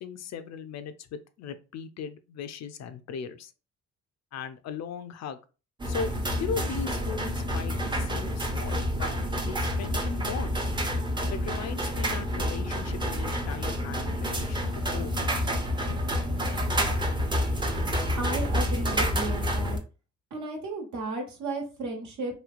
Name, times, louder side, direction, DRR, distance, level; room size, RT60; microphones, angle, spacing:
voice 1, 0.0-3.5 4.3-5.4 5.8-6.1 6.4-9.1 9.4-10.7 11.3-15.1 15.9-16.0, left 6 dB, 60° left, 0.5 m, -38 dB
sound 1, 5.8-19.8, equal, 15° right, 0.6 m, -28 dB
voice 2, 18.2-19.8 20.3-22.3, right 2 dB, 70° right, 1.2 m, -34 dB
3.1 x 2.7 x 2.4 m
cardioid pair, 90°, 30 cm